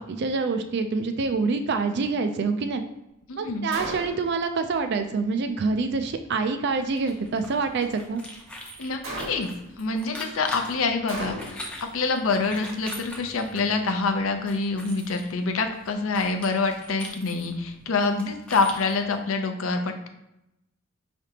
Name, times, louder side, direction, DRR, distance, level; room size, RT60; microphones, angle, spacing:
voice 1, 0.0-2.8 3.4-8.2, right 4 dB, 55° right, 8 dB, 0.4 m, -26 dB
voice 2, 3.3-3.7 8.8-9.5 9.8-20.1, left 3 dB, 75° left, 6 dB, 0.5 m, -26 dB
Gunshot gunfire, 3.7-4.4 9.0-9.7 11.1-11.8, right 1 dB, 75° right, 1.3 m, -35 dB
sound 1, 6.7-19.2, left 1 dB, 5° left, 0.5 m, -42 dB
4.9 x 3.3 x 2.8 m, 0.86 s
head